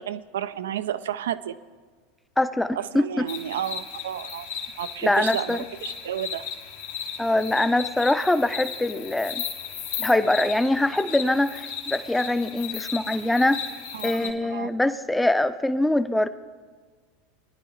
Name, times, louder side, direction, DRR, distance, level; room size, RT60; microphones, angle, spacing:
voice 1, 0.0-1.6 2.8-4.5 4.8-6.4 13.9-14.8, right 10 dB, 75° right, 14 dB, 0.5 m, -31 dB
voice 2, 2.4-3.3 5.0-5.6 7.2-9.4 10.0-13.7 14.0-16.3, left 1 dB, 5° left, 12 dB, 0.6 m, -23 dB
sound 1, 3.3-14.3, left 7 dB, 75° left, 1.7 m, -35 dB
20.5 x 10.5 x 3.2 m, 1.5 s
hypercardioid pair, 90°, 0 cm